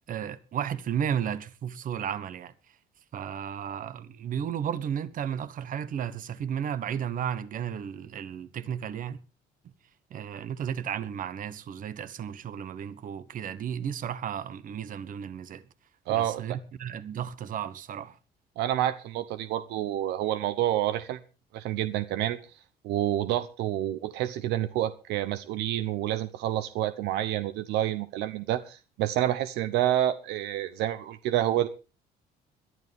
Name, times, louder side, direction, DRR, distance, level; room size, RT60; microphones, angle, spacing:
voice 1, 0.1-2.5 3.1-9.2 10.1-15.6 16.1-18.2, right 8 dB, 55° right, 1.3 m, -33 dB
voice 2, 16.1-16.4 18.6-21.2 21.5-22.4 22.8-31.7, right 12 dB, 85° right, 0.8 m, -28 dB
22.0 x 11.0 x 3.6 m
cardioid pair, 110°, 17 cm